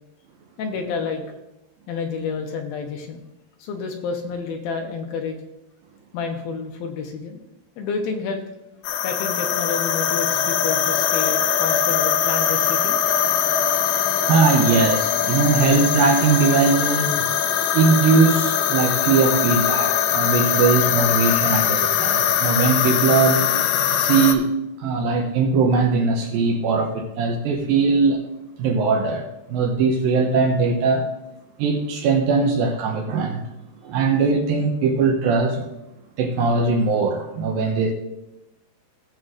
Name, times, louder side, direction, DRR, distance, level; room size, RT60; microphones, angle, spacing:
voice 1, 0.6-1.2 1.9-3.2 3.6-5.4 6.1-7.4 7.8-8.4 9.0-13.1, left 5 dB, 75° left, 3 dB, 2.4 m, -29 dB
sound 1, 8.8-24.4, left 9 dB, 90° left, 2.9 m, -21 dB
voice 2, 14.3-17.3 17.7-23.5 24.0-24.5 24.8-28.2 28.6-31.1 31.6-33.4 33.8-35.6 36.2-37.9, right 4 dB, 80° right, 3 dB, 2.2 m, -20 dB
16.5 x 7.8 x 2.5 m, 0.93 s
omnidirectional pair, 4.8 m